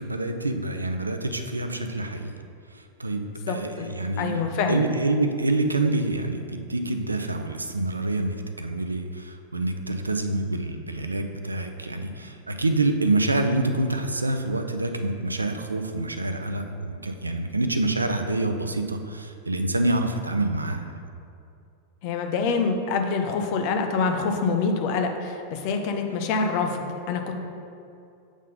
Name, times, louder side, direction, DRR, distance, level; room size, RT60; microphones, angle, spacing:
voice 1, 0.0-2.3 2.7-20.9, right 2 dB, 80° right, 6 dB, 0.4 m, -27 dB
voice 2, 3.5-3.9 4.2-4.9 22.0-27.4, left 4 dB, 45° left, 4 dB, 0.7 m, -26 dB
7.2 x 3.8 x 5.3 m, 2.5 s
figure-of-eight pair, 90°, 0 cm